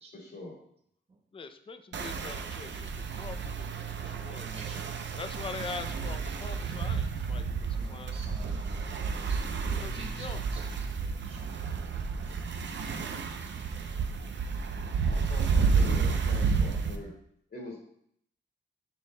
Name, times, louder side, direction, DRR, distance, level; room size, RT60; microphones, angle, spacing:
voice 1, 0.1-0.6 15.1-17.1 17.5-17.8, left 2 dB, 55° left, -2 dB, 2.0 m, -43 dB
voice 2, 1.3-4.5 5.2-8.2 9.8-10.4, left 4 dB, 25° left, 9 dB, 0.4 m, -43 dB
sound 1, 1.9-17.0, right 5 dB, 70° right, 0.6 m, -31 dB
voice 3, 4.4-5.0 7.7-10.4 11.0-11.4, right 3 dB, 30° right, 0 dB, 0.7 m, -49 dB
7.7 x 6.7 x 2.2 m, 0.69 s
wide cardioid pair, 160°, 20 cm